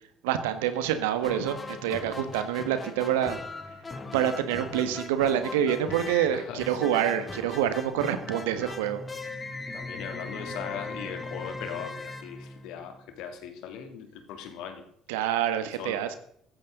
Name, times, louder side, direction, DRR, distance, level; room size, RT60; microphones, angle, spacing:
voice 1, 0.2-3.4 4.1-9.0 15.1-16.2, right 10 dB, 75° right, 10 dB, 1.5 m, -27 dB
sound 1, 1.2-13.1, left 3 dB, 25° left, 2.6 m, -39 dB
voice 2, 6.3-6.9 9.7-14.8 15.8-16.1, left 8 dB, 65° left, 5 dB, 2.9 m, -39 dB
15.0 x 14.5 x 3.9 m, 0.68 s
hypercardioid pair, 55°, 0 cm